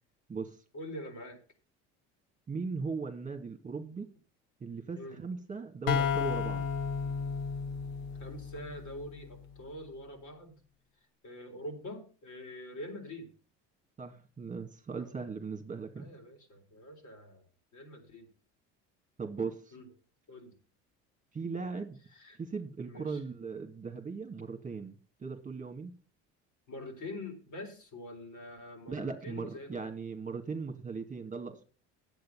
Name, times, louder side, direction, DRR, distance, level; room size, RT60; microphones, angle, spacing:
voice 1, 0.7-1.4 4.9-5.2 8.2-10.6 11.2-13.3 15.0-15.2 16.0-17.5 17.7-18.3 19.7-19.8 20.3-20.5 22.1-22.4 22.9-23.2 26.7-29.8, left 1 dB, 55° left, 4.1 m, -45 dB
voice 2, 2.5-4.1 4.6-6.7 14.0-16.1 19.2-19.7 21.3-22.0 22.4-24.9 25.2-25.9 28.9-31.6, right 4 dB, 20° right, 2.2 m, -38 dB
sound 1, 5.9-9.5, left 6 dB, 75° left, 1.2 m, -33 dB
10.5 x 8.3 x 5.7 m
hypercardioid pair, 75°, 35 cm